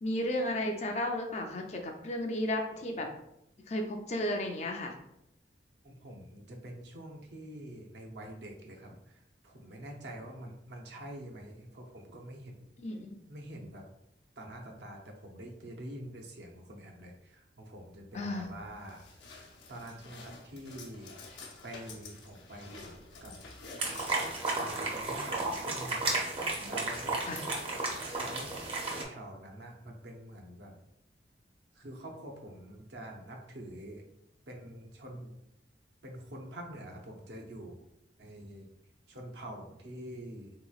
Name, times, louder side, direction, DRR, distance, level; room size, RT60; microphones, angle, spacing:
voice 1, 0.0-3.1 3.7-4.9 12.8-13.2 18.1-18.5 26.6-26.7 27.3-27.4, left 1 dB, 35° left, 3 dB, 0.4 m, -33 dB
voice 2, 5.8-12.6 13.3-13.8 14.4-19.3 19.7-21.2 21.6-23.5 24.5-26.1 26.7-27.2 28.2-28.5 28.9-30.7 31.7-34.0 34.5-35.3 36.0-37.8 38.2-38.7 39.1-40.5, right 1 dB, 70° right, 1 dB, 0.6 m, -46 dB
sound 1, 18.1-25.5, left 3 dB, 80° left, 0.7 m, -51 dB
sound 2, 23.8-29.0, right 2 dB, 30° right, 0.6 m, -33 dB
3.8 x 2.9 x 2.4 m, 0.81 s
head